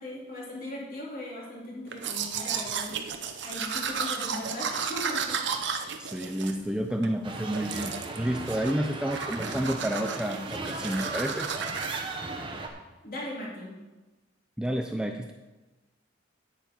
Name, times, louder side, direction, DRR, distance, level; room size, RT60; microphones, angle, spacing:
voice 1, 0.0-2.9 3.4-5.4 5.6-5.9 13.0-13.7, left 1 dB, 45° left, -5 dB, 3.4 m, -38 dB
Domestic sounds home sounds, 1.9-7.1 7.5-8.2 8.5-8.8 9.1-12.0, right 6 dB, 65° right, 0.8 m, -33 dB
voice 2, 6.0-11.5 14.6-15.3, equal, 5° right, 4 dB, 0.4 m, -30 dB
sound 1, 7.2-12.7, right 2 dB, 25° right, 0.9 m, -36 dB
10.0 x 9.1 x 4.6 m, 1.1 s
head